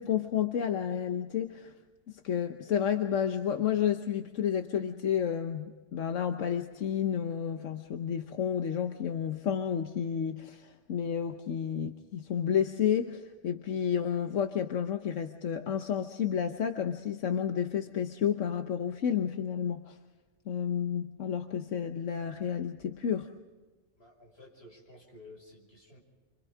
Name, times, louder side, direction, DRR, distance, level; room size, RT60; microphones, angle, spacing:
voice 1, 0.0-1.7 2.1-20.0 20.5-23.3, left 8 dB, 85° left, 6 dB, 1.3 m, -31 dB
voice 2, 24.0-26.0, left 2 dB, 55° left, -1 dB, 6.2 m, -53 dB
29.5 x 25.5 x 3.7 m, 1.3 s
omnidirectional pair, 1.2 m